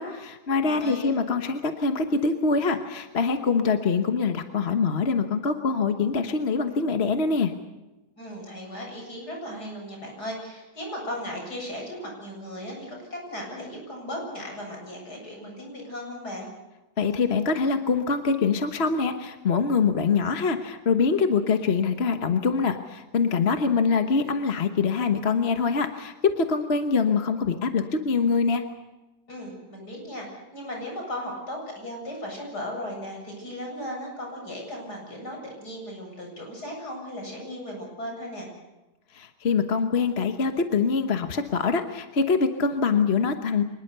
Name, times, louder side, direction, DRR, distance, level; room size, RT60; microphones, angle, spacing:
voice 1, 0.0-7.5 17.0-28.6 39.1-43.6, left 5 dB, 40° left, 7 dB, 1.4 m, -24 dB
voice 2, 0.6-1.1 8.2-16.5 29.3-38.5, equal, 75° left, 0 dB, 8.4 m, -36 dB
25.0 x 20.5 x 6.9 m, 1.1 s
omnidirectional pair, 1.8 m